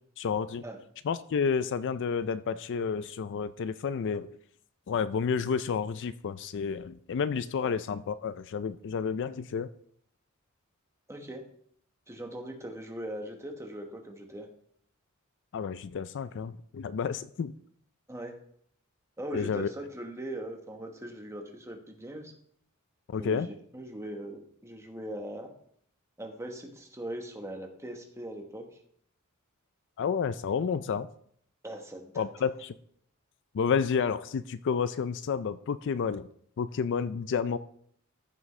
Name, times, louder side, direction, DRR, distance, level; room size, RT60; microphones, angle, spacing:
voice 1, 0.2-0.6 1.0-4.3 4.9-9.7 15.5-17.5 19.3-19.7 23.1-23.5 30.0-31.1 32.2-32.7 33.5-36.3 36.6-37.6, left 6 dB, 55° left, 14 dB, 0.4 m, -30 dB
voice 2, 11.1-11.4 12.1-14.5 18.1-18.3 19.2-22.3 23.1-23.5 23.7-25.5 26.2-28.7 31.6-32.3, right 1 dB, 15° right, 3 dB, 1.3 m, -40 dB
14.0 x 6.1 x 3.2 m, 0.64 s
head